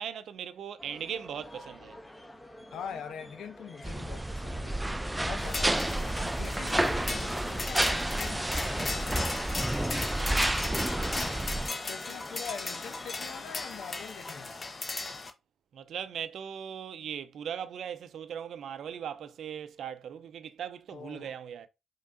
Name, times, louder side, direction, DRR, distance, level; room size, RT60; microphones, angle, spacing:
voice 1, 0.0-2.0 10.1-11.4 15.7-21.7, right 8 dB, 70° right, 0.6 m, -39 dB
sound 1, 0.8-13.8, left 1 dB, 20° left, 1.4 m, -50 dB
voice 2, 2.7-9.4 11.9-14.6 20.9-21.3, left 7 dB, 75° left, 0.7 m, -43 dB
sound 2, 3.8-11.7, right 1 dB, 15° right, 0.4 m, -30 dB
sound 3, 5.4-15.3, left 3 dB, 45° left, 0.9 m, -37 dB
5.4 x 3.7 x 2.5 m
hypercardioid pair, 40°, 0 cm